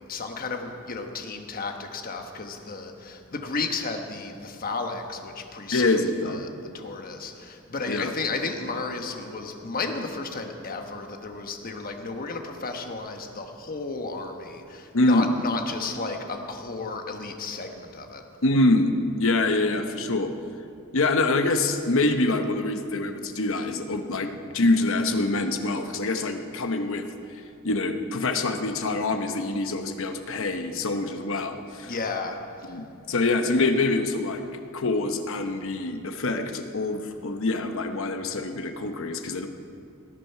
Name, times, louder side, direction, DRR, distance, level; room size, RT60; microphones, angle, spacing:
voice 1, 0.1-6.5 6.7-18.2 31.8-32.7, left 3 dB, 45° left, 4 dB, 1.2 m, -33 dB
voice 2, 5.7-6.4 7.9-8.1 14.9-15.4 18.4-20.3 20.9-27.1 27.6-31.9 32.7-34.4 34.7-39.5, left 2 dB, 65° left, 6 dB, 1.0 m, -25 dB
19.0 x 9.0 x 5.7 m, 2.6 s
head